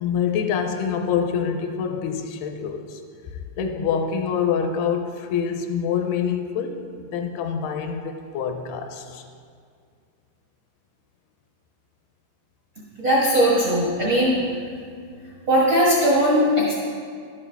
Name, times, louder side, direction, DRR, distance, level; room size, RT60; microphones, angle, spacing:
voice 1, 0.0-3.0 3.6-6.8 7.1-9.2, left 7 dB, 80° left, 6 dB, 2.5 m, -26 dB
voice 2, 13.0-14.4 15.5-16.7, equal, 75° right, -6 dB, 1.1 m, -19 dB
12.0 x 9.5 x 3.4 m, 2.2 s
omnidirectional pair, 4.7 m